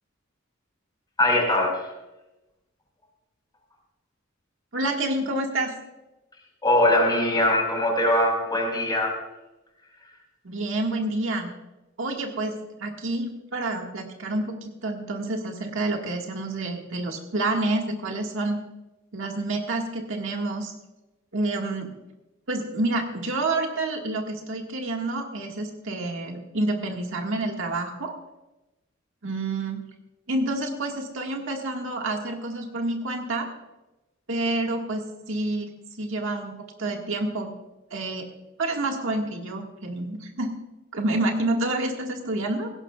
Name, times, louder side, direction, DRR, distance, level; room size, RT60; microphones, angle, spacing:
voice 1, 1.2-1.9 6.6-9.1, left 1 dB, 20° left, 0 dB, 5.1 m, -21 dB
voice 2, 4.7-5.7 10.4-11.5 12.0-18.6 19.1-20.7 21.3-21.9 22.5-28.2 29.2-29.8 30.3-33.5 34.3-35.7 36.0-37.5 37.9-38.3 38.6-40.5 40.9-42.7, right 2 dB, 65° right, 2 dB, 1.8 m, -28 dB
18.0 x 16.0 x 2.4 m, 0.99 s
head